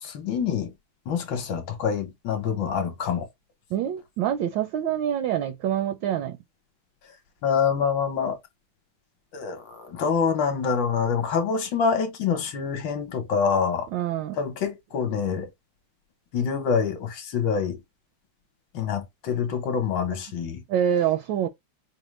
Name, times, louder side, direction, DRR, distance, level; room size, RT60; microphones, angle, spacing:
voice 1, 0.0-0.7 1.1-3.3 7.4-8.4 9.3-13.9 14.3-15.5 16.3-17.8 18.7-20.6, left 6 dB, 65° left, 1.5 m, -26 dB
voice 2, 3.7-6.4 13.9-14.4 20.7-21.5, right 10 dB, 75° right, 1.1 m, -26 dB
5.1 x 2.1 x 3.1 m
omnidirectional pair, 2.4 m